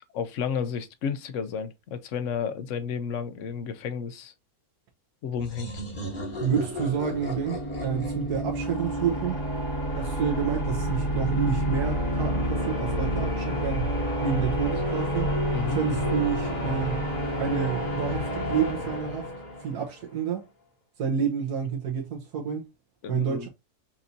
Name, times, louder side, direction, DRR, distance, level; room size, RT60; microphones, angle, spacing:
voice 1, 0.1-4.3 5.2-5.8 15.5-15.8 23.0-23.5, left 7 dB, 60° left, 0.9 m, -32 dB
sound 1, 5.4-9.9, left 1 dB, 35° left, 1.5 m, -37 dB
voice 2, 6.4-9.4 9.9-13.9 14.2-15.3 15.7-17.0 17.4-19.3 19.6-20.4 21.0-22.7 23.1-23.5, right 7 dB, 80° right, 1.5 m, -29 dB
sound 2, 7.0-19.9, equal, 80° left, 2.9 m, -29 dB
5.8 x 2.7 x 2.6 m
omnidirectional pair, 1.6 m